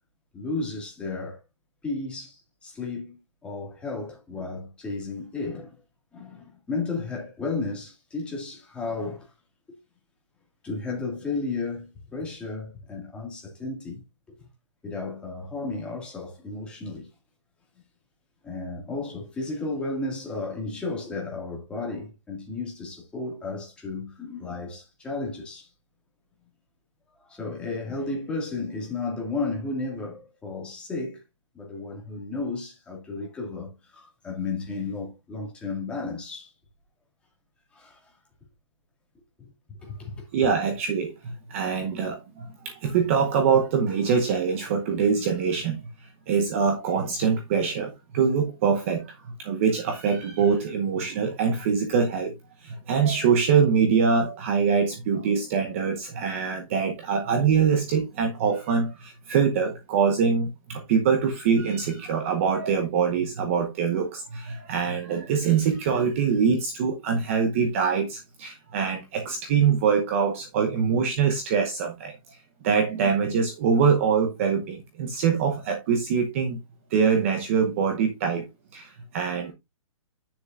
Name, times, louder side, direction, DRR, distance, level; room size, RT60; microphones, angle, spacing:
voice 1, 0.3-1.4 1.8-5.7 6.1-9.3 9.7-9.8 10.6-14.0 14.3-14.5 14.8-17.1 18.4-25.7 27.2-31.2 31.5-36.5 37.7-38.1 39.4-40.5, left 3 dB, 5° left, 2.0 m, -33 dB
voice 2, 40.3-52.3 52.6-72.4 72.6-76.6 76.9-78.5 78.7-79.5, right 6 dB, 25° right, 0.8 m, -24 dB
9.8 x 6.7 x 2.5 m
hypercardioid pair, 170°, 17 cm